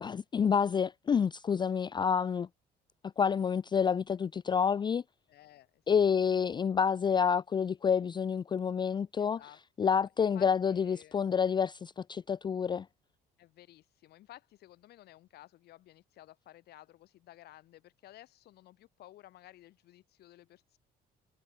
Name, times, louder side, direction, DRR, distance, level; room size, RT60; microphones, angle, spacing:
voice 1, 0.0-2.5 3.2-5.0 5.9-9.4 9.8-12.9, left 7 dB, 25° left, 0.4 m, -28 dB
voice 2, 5.3-6.3 9.2-11.2 13.4-20.8, left 14 dB, 70° left, 2.7 m, -56 dB
cardioid pair, 110°, 17 cm